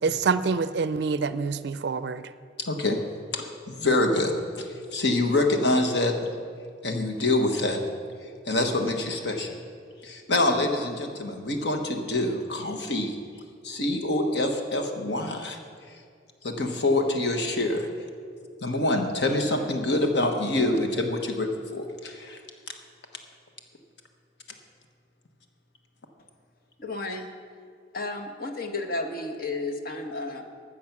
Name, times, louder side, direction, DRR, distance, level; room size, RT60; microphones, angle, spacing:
voice 1, 0.0-2.3, right 5 dB, 65° right, 14 dB, 0.4 m, -26 dB
voice 2, 2.6-3.0 3.3-4.3 4.6-6.1 6.8-7.8 8.5-9.6 10.0-13.2 13.6-15.6 16.4-17.9 18.6-22.4, left 2 dB, 70° left, 4 dB, 1.2 m, -26 dB
voice 3, 26.8-27.3 27.9-30.4, left 2 dB, 55° left, 4 dB, 1.1 m, -32 dB
14.5 x 6.6 x 6.0 m, 2.1 s
head